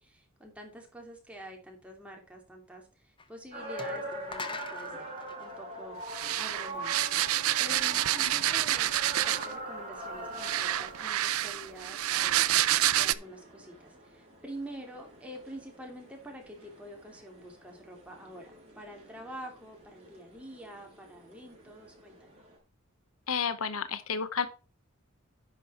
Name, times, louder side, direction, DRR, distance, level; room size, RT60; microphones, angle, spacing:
voice 1, 0.0-5.1 5.4-6.0 6.4-7.1 7.6-12.5 12.9-22.3, right 1 dB, 5° right, 1 dB, 2.8 m, -47 dB
sound 1, 3.2-3.3 3.8-6.6, left 4 dB, 25° left, 0.8 m, -43 dB
sound 2, 3.5-22.5, right 1 dB, 30° right, 5.2 m, -44 dB
sound 3, 6.1-9.6 10.4-13.1, right 13 dB, 90° right, 0.5 m, -28 dB
voice 2, 23.3-24.5, left 6 dB, 75° left, 13 dB, 0.9 m, -31 dB
10.5 x 6.1 x 4.3 m, 0.34 s
head